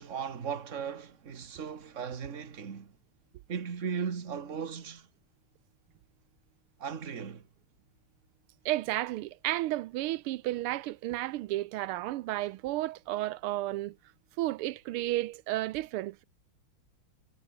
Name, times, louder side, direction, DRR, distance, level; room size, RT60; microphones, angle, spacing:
voice 1, 0.0-2.9 3.5-5.1 6.8-7.5, right 6 dB, 35° right, 1.8 m, -37 dB
voice 2, 8.6-13.9 14.4-16.2, right 16 dB, 85° right, 1.5 m, -32 dB
omnidirectional pair, 2.4 m